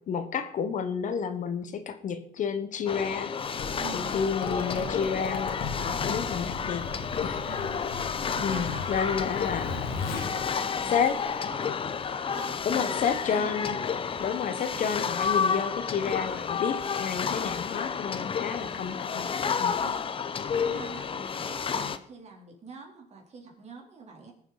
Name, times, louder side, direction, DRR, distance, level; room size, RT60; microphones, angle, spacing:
voice 1, 0.1-3.3 3.9-6.8 7.2-7.6 8.4-10.3 10.9-11.2 12.6-13.8 14.2-19.3 19.6-19.8, left 6 dB, 55° left, 9 dB, 1.2 m, -30 dB
sound 1, 2.9-22.0, left 6 dB, 35° left, 0.8 m, -31 dB
Zipper (clothing), 3.4-11.4, left 4 dB, 80° left, 2.0 m, -38 dB
voice 2, 3.7-4.2 7.4-7.8 8.3-11.7 12.3-12.6 12.9-13.6 18.6-18.8 19.8-20.1 20.6-24.3, right 4 dB, 45° right, 1 dB, 3.4 m, -45 dB
19.5 x 7.0 x 4.1 m, 0.62 s
supercardioid pair, 85°, 16 cm